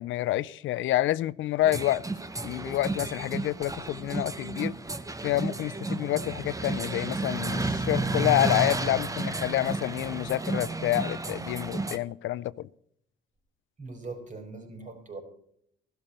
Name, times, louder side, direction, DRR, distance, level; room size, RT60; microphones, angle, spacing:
voice 1, 0.0-2.0 2.4-4.7 5.2-12.7, left 14 dB, 80° left, 18 dB, 0.5 m, -28 dB
sound 1, 1.7-12.0, right 2 dB, 15° right, 1.1 m, -32 dB
voice 2, 13.8-15.2, right 3 dB, 40° right, 4 dB, 4.9 m, -41 dB
15.5 x 12.0 x 4.3 m, 0.68 s
cardioid pair, 90°, 20 cm